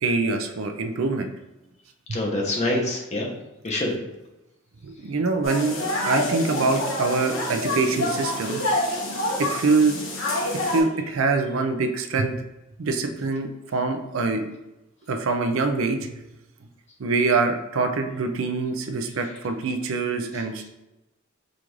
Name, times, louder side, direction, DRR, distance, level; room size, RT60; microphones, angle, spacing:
voice 1, 0.0-1.3 4.8-8.6 9.4-10.0 10.7-12.4 12.8-14.4 15.1-16.1 17.0-20.7, right 3 dB, 75° right, 6 dB, 0.5 m, -24 dB
voice 2, 2.1-3.3 3.6-3.9 20.3-20.4, left 1 dB, 35° left, -1 dB, 0.8 m, -25 dB
sound 1, 5.4-10.8, left 1 dB, 70° left, 1.1 m, -27 dB
5.0 x 2.5 x 3.1 m, 0.98 s
head